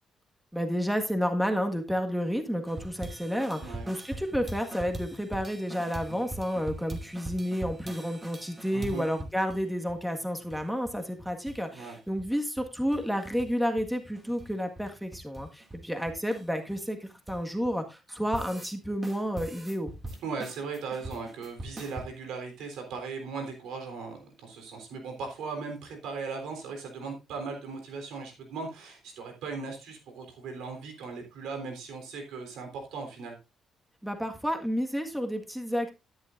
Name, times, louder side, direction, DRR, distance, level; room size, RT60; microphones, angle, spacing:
voice 1, 0.5-19.9 34.0-35.9, equal, ahead, 5 dB, 1.7 m, -31 dB
sound 1, 2.7-9.6 9.9-10.0 10.3-11.0 11.2-11.6 11.8-13.5 13.8-17.7 18.1-18.7 19.0-22.1, right 1 dB, 20° right, 2.4 m, -42 dB
voice 2, 8.7-9.0 11.7-12.0 20.2-33.4, right 4 dB, 85° right, 5 dB, 3.7 m, -38 dB
12.5 x 10.5 x 2.6 m, 0.26 s
cardioid pair, 90°, 0 cm